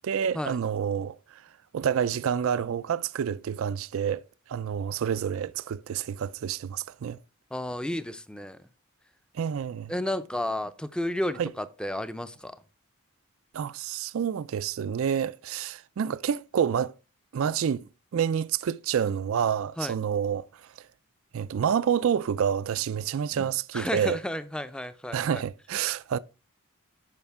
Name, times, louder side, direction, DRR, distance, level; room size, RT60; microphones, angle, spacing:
voice 1, 0.0-1.4 1.7-4.2 4.5-7.2 9.3-9.9 11.4-11.5 13.5-16.9 17.3-20.7 21.3-24.2 25.1-26.2, right 8 dB, 70° right, 0.3 m, -28 dB
voice 2, 7.5-8.6 9.9-12.6 19.8-19.9 23.3-23.5 23.7-25.4, left 1 dB, 5° left, 0.5 m, -32 dB
12.5 x 5.2 x 3.5 m
head